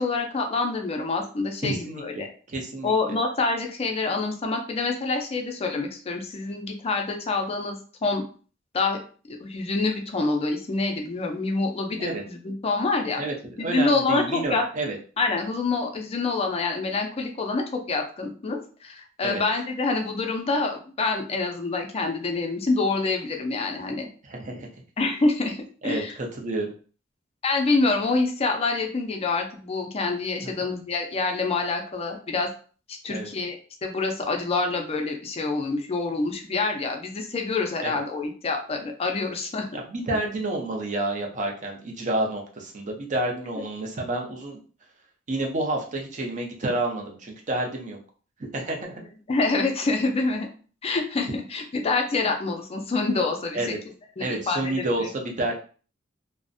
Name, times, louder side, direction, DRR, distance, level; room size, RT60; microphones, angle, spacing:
voice 1, 0.0-2.3 2.8-8.2 8.7-9.0 9.3-13.2 13.6-14.7 15.2-24.1 25.0-25.6 25.8-26.1 27.4-32.5 32.9-39.8 43.6-43.7 49.3-50.5 50.8-53.8 54.2-54.8, left 3 dB, 30° left, 3 dB, 0.4 m, -26 dB
voice 2, 1.6-2.9 12.0-12.2 13.2-13.3 13.6-15.0 19.2-19.4 24.2-24.7 25.8-26.7 30.4-30.5 33.1-33.3 37.8-38.0 39.7-44.6 45.3-48.0 48.5-49.0 53.5-53.8 54.2-55.5, right 2 dB, 40° right, 0 dB, 0.5 m, -29 dB
2.5 x 2.0 x 2.5 m, 0.40 s
head